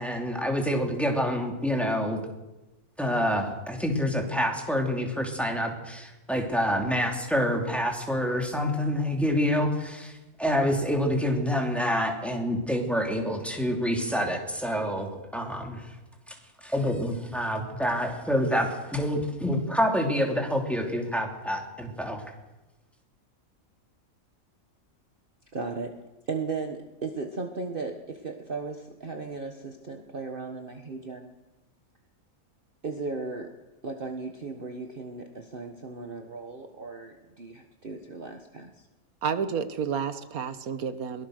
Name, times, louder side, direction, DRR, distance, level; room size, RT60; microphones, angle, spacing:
voice 1, 0.0-2.2 3.0-15.9 16.3-16.4 16.6-22.3, equal, ahead, 2 dB, 2.9 m, -27 dB
voice 2, 25.5-26.0 26.3-31.3 32.8-33.5 33.8-38.9, right 4 dB, 40° right, 5 dB, 1.5 m, -36 dB
voice 3, 39.2-41.3, right 7 dB, 80° right, 11 dB, 1.5 m, -30 dB
22.5 x 18.5 x 6.5 m, 1.1 s
omnidirectional pair, 1.5 m